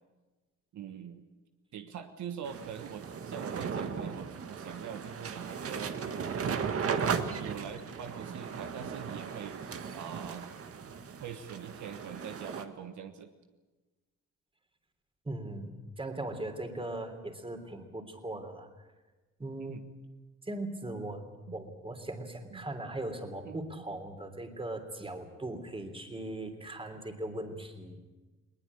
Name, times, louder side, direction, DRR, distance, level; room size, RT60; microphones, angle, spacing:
voice 1, 0.7-1.2 1.7-10.5 11.2-13.3 19.6-19.8 21.5-21.6 22.5-22.7 23.4-23.8, right 8 dB, 70° right, 7 dB, 1.4 m, -44 dB
sound 1, 2.4-12.6, right 6 dB, 50° right, 1.8 m, -36 dB
voice 2, 15.3-15.7 16.0-18.7 19.4-19.8 20.4-21.3 21.5-28.0, right 1 dB, 20° right, 6 dB, 3.4 m, -39 dB
20.5 x 19.5 x 8.6 m, 1.2 s
cardioid pair, 90°, 30 cm